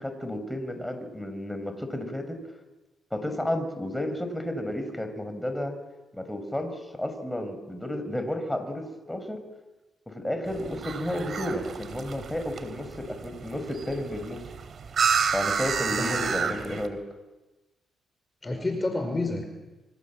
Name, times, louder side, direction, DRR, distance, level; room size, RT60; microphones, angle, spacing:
voice 1, 0.0-2.4 3.1-5.8 6.1-9.4 10.1-14.4 15.3-17.0, left 1 dB, 5° left, 7 dB, 6.1 m, -32 dB
sound 1, 10.5-16.9, right 6 dB, 60° right, 3.4 m, -30 dB
voice 2, 15.9-16.7 18.4-19.4, left 2 dB, 25° left, 5 dB, 5.1 m, -30 dB
28.0 x 25.0 x 7.5 m, 1.1 s
cardioid pair, 65°, 0 cm